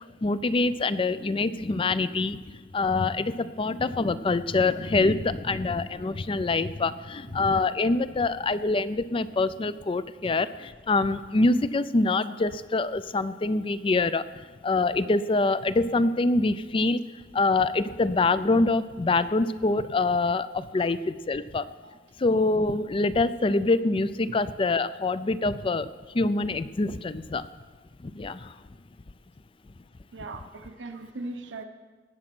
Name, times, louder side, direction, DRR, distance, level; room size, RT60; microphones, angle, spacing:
voice 1, 0.2-17.0 17.3-21.7 22.2-25.9 26.1-27.5 28.0-28.5, left 3 dB, 30° left, 15 dB, 0.4 m, -25 dB
voice 2, 30.1-31.6, right 2 dB, 80° right, 6 dB, 0.9 m, -39 dB
18.5 x 7.7 x 6.1 m, 1.4 s
head